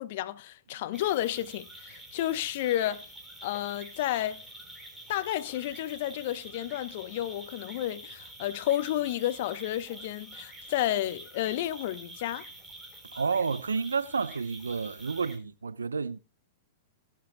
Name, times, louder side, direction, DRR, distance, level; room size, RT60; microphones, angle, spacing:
voice 1, 0.0-3.1 3.4-4.4 5.1-12.5, left 13 dB, 55° left, 0.8 m, -31 dB
sound 1, 0.9-15.4, right 1 dB, 5° right, 3.6 m, -47 dB
voice 2, 13.1-16.2, right 5 dB, 90° right, 0.7 m, -30 dB
22.0 x 7.4 x 2.2 m
hypercardioid pair, 110°, 0 cm